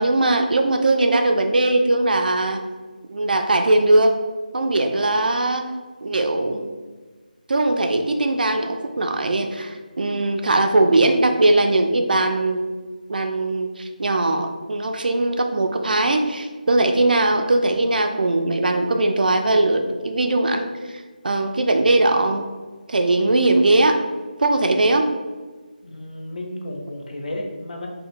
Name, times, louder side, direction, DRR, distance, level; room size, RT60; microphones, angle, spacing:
voice 1, 0.0-2.6 3.1-4.2 4.5-5.7 6.0-6.7 7.5-12.7 13.1-20.7 21.2-22.5 22.9-24.0 24.4-25.1, right 2 dB, 70° right, 5 dB, 0.3 m, -20 dB
voice 2, 25.8-27.9, left 1 dB, 60° left, 1 dB, 0.5 m, -32 dB
2.8 x 2.1 x 2.4 m, 1.4 s
figure-of-eight pair, 170°, 5 cm